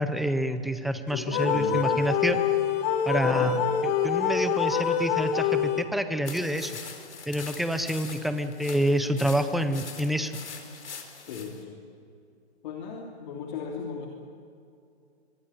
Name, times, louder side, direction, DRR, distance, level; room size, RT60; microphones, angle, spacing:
voice 1, 0.0-2.4 3.1-3.6 4.0-6.8 7.3-10.4, equal, ahead, 9 dB, 0.6 m, -27 dB
voice 2, 1.1-2.1 3.2-3.6 11.2-11.8 12.6-14.1, left 6 dB, 45° left, 0 dB, 3.1 m, -36 dB
sound 1, 1.3-6.2, left 7 dB, 25° left, 1.4 m, -26 dB
sound 2, 6.3-11.6, left 5 dB, 90° left, 4.4 m, -43 dB
24.5 x 23.0 x 8.8 m, 2.5 s
hypercardioid pair, 155°, 33 cm